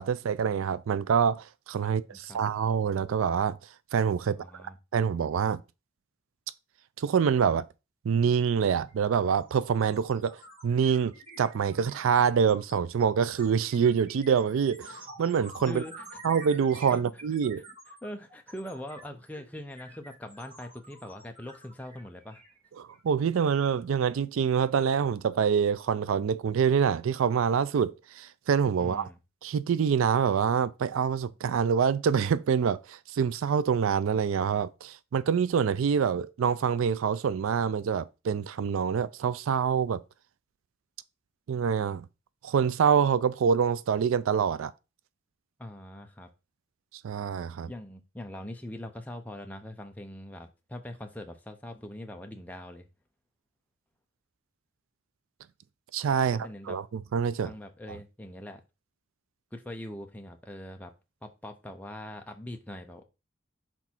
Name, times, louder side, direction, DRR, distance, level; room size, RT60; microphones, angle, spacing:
voice 1, 0.0-3.6 3.9-4.4 4.9-5.6 7.0-7.7 8.0-15.8 16.2-17.6 22.8-29.1 29.4-40.0 41.5-42.1 42.4-44.7 47.0-47.7 55.9-57.5, right 7 dB, 80° right, 0.4 m, -26 dB
voice 2, 1.8-2.4 4.2-4.8 15.7-16.1 16.9-17.0 18.0-22.4 28.8-29.2 45.6-46.3 47.7-52.9 56.2-56.8 57.4-58.6 59.5-60.9 61.2-63.0, left 1 dB, 10° left, 0.6 m, -42 dB
sound 1, 8.3-8.5 8.7-23.1, right 1 dB, 30° right, 2.1 m, -49 dB
6.1 x 3.5 x 4.4 m
head